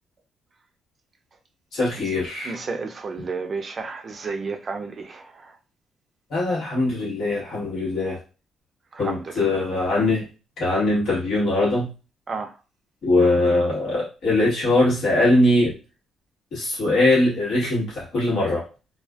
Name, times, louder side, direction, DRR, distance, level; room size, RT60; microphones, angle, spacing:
voice 1, 1.7-2.6 6.3-8.2 9.0-10.2 10.6-11.9 13.0-15.7 16.5-18.6, left 2 dB, 70° left, 1.3 m, -21 dB
voice 2, 2.5-5.2 8.9-9.6 12.3-12.5, right 4 dB, 40° right, 0.4 m, -31 dB
2.4 x 2.4 x 2.3 m
cardioid pair, 90°, 0 cm